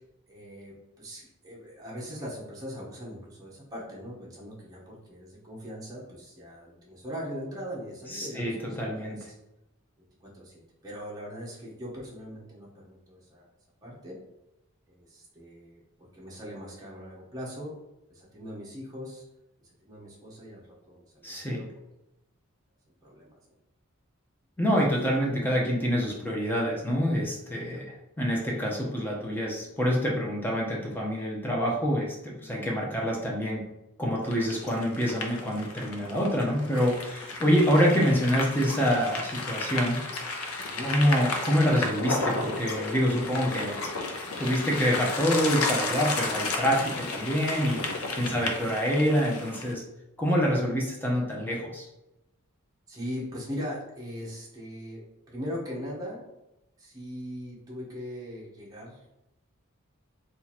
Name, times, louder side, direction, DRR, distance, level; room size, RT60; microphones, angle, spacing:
voice 1, 0.3-9.2 10.3-10.5 10.8-13.5 13.8-14.1 14.9-17.7 18.1-19.2 19.8-21.7 23.0-23.3 27.7-27.8 32.4-32.5 40.6-40.9 48.2-48.5 52.9-55.0 55.3-56.3 56.8-59.0, equal, 15° right, -6 dB, 0.8 m, -40 dB
voice 2, 8.1-9.2 21.2-21.6 24.6-33.7 34.0-40.0 40.8-43.9 44.4-49.8 50.2-51.9, equal, 10° left, -2 dB, 0.7 m, -26 dB
sound 1, 34.3-49.7, left 3 dB, 80° left, 0.6 m, -33 dB
2.8 x 2.5 x 4.1 m, 0.91 s
head